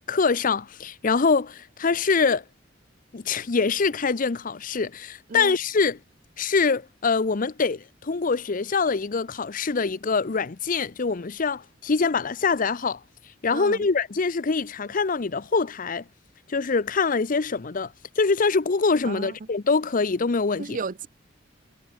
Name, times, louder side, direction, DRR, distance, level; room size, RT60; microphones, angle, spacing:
voice 1, 0.0-2.4 3.1-6.0 6.4-13.0 13.4-16.0 16.5-20.8, left 4 dB, 45° left, 0.7 m, -24 dB
voice 2, 13.5-13.9 19.0-19.3 20.6-21.1, right 4 dB, 45° right, 0.6 m, -34 dB
head